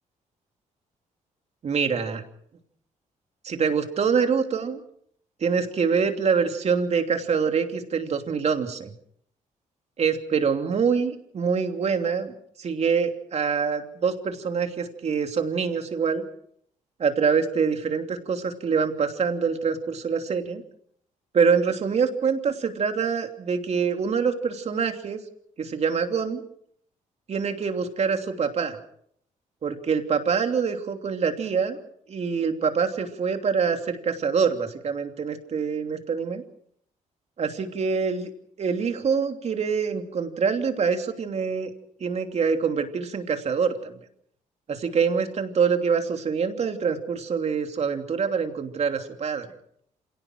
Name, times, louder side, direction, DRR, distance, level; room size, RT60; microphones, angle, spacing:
voice 1, 1.6-2.2 3.4-4.8 5.4-8.9 10.0-16.2 17.0-20.6 21.3-25.2 25.6-26.4 27.3-28.8 29.6-31.8 32.1-36.4 37.4-38.3 38.6-41.7 42.0-44.0 44.7-49.5, right 6 dB, 50° right, 5 dB, 3.0 m, -25 dB
27.0 x 17.5 x 6.2 m, 0.67 s
cardioid pair, 95°, 14 cm